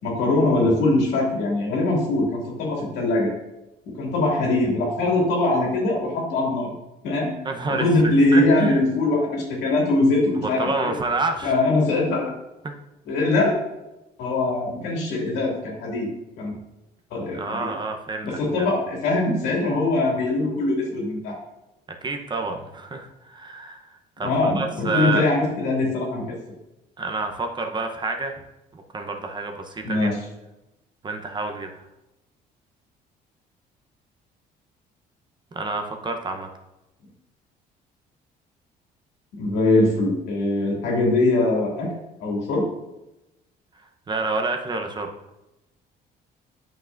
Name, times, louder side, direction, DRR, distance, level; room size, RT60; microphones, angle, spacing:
voice 1, 0.0-3.3 4.0-6.7 7.0-7.3 7.8-10.9 11.4-12.3 13.1-13.5 14.2-16.1 16.4-16.6 17.1-17.7 18.2-21.3 24.2-26.2 29.8-30.1 39.4-41.9 42.2-42.6, left 2 dB, 85° left, -2 dB, 2.3 m, -22 dB
voice 2, 7.4-8.8 10.4-11.5 17.3-18.7 22.0-25.3 27.0-28.4 28.7-30.1 31.0-31.7 35.5-36.5 44.1-45.1, right 3 dB, 25° right, 4 dB, 0.8 m, -28 dB
8.9 x 5.8 x 2.6 m, 0.96 s
cardioid pair, 110°, 17 cm